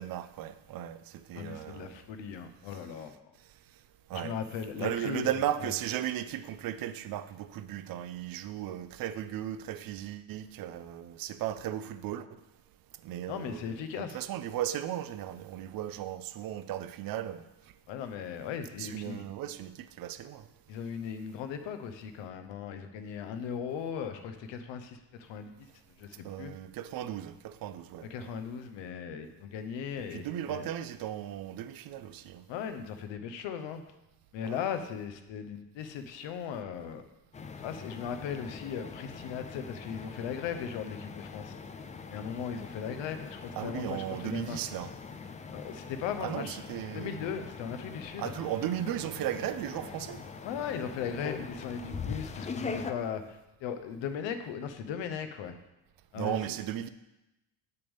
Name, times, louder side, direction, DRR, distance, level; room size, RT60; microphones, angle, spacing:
voice 1, 0.0-2.0 4.1-4.4 4.8-12.3 13.0-17.4 18.8-20.5 26.2-28.3 30.0-32.4 34.4-34.7 43.6-44.9 46.2-47.3 48.2-50.2 56.1-56.9, right 11 dB, 50° right, 0.5 m, -36 dB
voice 2, 1.3-3.2 4.1-5.3 13.3-14.2 17.9-19.2 20.7-25.7 26.0-26.5 28.1-30.7 32.5-33.8 34.3-37.0 37.6-41.5 42.1-44.6 45.5-46.6 46.9-48.3 50.4-55.5 56.1-56.4, left 7 dB, 75° left, 0.9 m, -38 dB
sound 1, 37.3-52.9, left 5 dB, 20° left, 0.3 m, -42 dB
7.9 x 6.8 x 3.5 m
cardioid pair, 110°, 44 cm